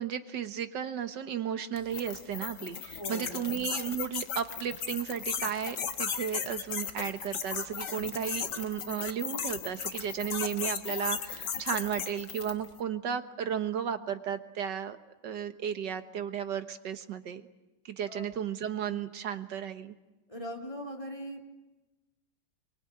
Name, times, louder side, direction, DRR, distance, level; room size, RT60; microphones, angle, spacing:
voice 1, 0.0-15.0 15.2-17.4 17.8-19.9, right 8 dB, 65° right, 9 dB, 1.8 m, -34 dB
sound 1, 1.8-12.7, left 7 dB, 65° left, 1.9 m, -36 dB
voice 2, 2.9-3.5 18.1-18.4 20.3-21.5, equal, 15° left, 1 dB, 3.3 m, -40 dB
24.5 x 24.0 x 8.6 m, 1.1 s
omnidirectional pair, 2.1 m